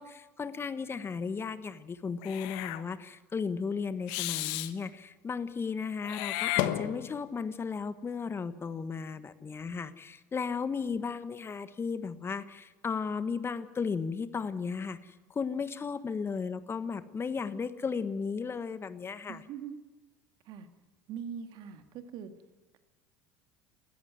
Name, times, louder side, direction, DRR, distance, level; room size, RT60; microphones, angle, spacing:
voice 1, 0.0-19.4, left 5 dB, 25° left, 13 dB, 1.4 m, -35 dB
Meow / Hiss, 2.2-2.8 4.1-4.7 6.0-7.3, left 15 dB, 65° left, 1.2 m, -32 dB
voice 2, 19.3-19.8 20.4-20.7 21.1-22.3, right 7 dB, 55° right, 8 dB, 2.0 m, -42 dB
20.5 x 14.0 x 9.3 m, 1.2 s
hypercardioid pair, 75°, 9 cm